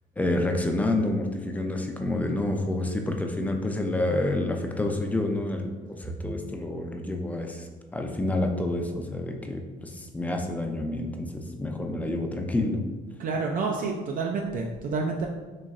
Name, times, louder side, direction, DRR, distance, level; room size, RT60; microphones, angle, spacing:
voice 1, 0.2-12.8, left 2 dB, 10° left, 3 dB, 0.4 m, -28 dB
voice 2, 13.2-15.3, right 4 dB, 55° right, 1 dB, 0.4 m, -29 dB
4.0 x 3.0 x 2.4 m, 1.3 s
cardioid pair, 110°, 17 cm